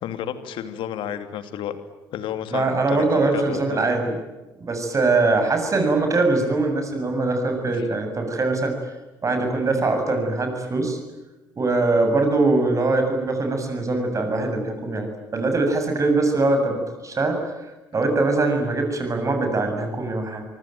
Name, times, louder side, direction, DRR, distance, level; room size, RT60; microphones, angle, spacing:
voice 1, 0.0-1.8 2.1-3.8 5.2-5.4 7.7-7.9, left 10 dB, 55° left, 10 dB, 2.8 m, -32 dB
voice 2, 2.5-4.1 4.6-8.7 9.2-11.0 11.6-20.4, right 3 dB, 30° right, 5 dB, 7.6 m, -22 dB
25.5 x 25.0 x 9.3 m, 1.1 s
figure-of-eight pair, 50°, 10 cm